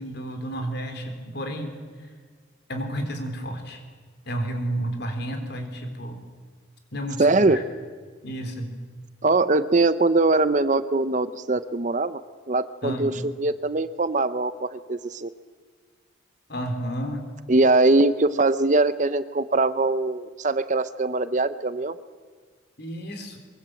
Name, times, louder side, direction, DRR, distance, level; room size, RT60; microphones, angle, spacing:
voice 1, 0.0-1.8 2.7-3.8 4.3-6.2 6.9-7.6 8.2-8.7 12.8-13.2 16.5-17.3 22.8-23.4, right 1 dB, 55° left, 5 dB, 3.8 m, -31 dB
voice 2, 7.2-7.6 9.2-12.2 12.5-13.1 13.4-15.3 17.5-21.9, right 2 dB, 40° right, 13 dB, 0.7 m, -22 dB
23.5 x 23.0 x 7.7 m, 1.5 s
head